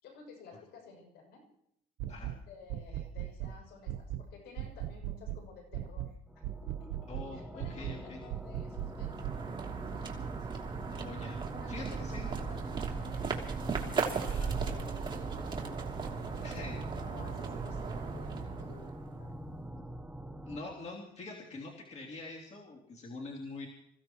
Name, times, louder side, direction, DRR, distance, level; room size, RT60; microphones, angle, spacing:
voice 1, 0.0-1.4 2.5-6.2 6.6-9.3 9.8-10.6 11.5-13.5 13.8-19.4, left 4 dB, 75° left, 2 dB, 7.0 m, -54 dB
sound 1, 2.0-2.4 2.7-3.6 3.9-4.3 4.6-5.4 5.7-6.1 6.4-7.3 7.6-8.0 8.3-9.4, right 12 dB, 80° right, 0.8 m, -38 dB
sound 2, 6.3-20.6, right 1 dB, 5° right, 1.2 m, -45 dB
voice 2, 7.1-8.2 10.9-11.4 11.7-12.3 14.3-14.5 16.4-16.8 20.4-23.7, left 2 dB, 40° left, -3 dB, 3.1 m, -44 dB
sound 3, 8.6-19.3, right 5 dB, 30° right, 2.9 m, -37 dB
27.0 x 16.0 x 3.1 m, 0.76 s
cardioid pair, 110°, 17 cm